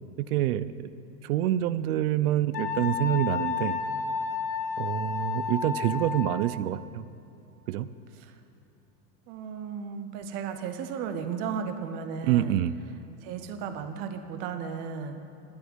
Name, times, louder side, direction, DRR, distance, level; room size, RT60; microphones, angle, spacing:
voice 1, 0.3-0.9 1.2-3.8 4.8-7.0 7.7-7.9 12.2-12.7, right 12 dB, 60° right, 16 dB, 0.6 m, -27 dB
Wind instrument woodwind instrument, 2.5-6.6, left 6 dB, 75° left, 1.7 m, -31 dB
voice 2, 9.3-12.5 13.2-15.4, right 6 dB, 20° right, 8 dB, 0.4 m, -35 dB
10.5 x 8.3 x 10.0 m, 3.0 s
supercardioid pair, 145°, 49 cm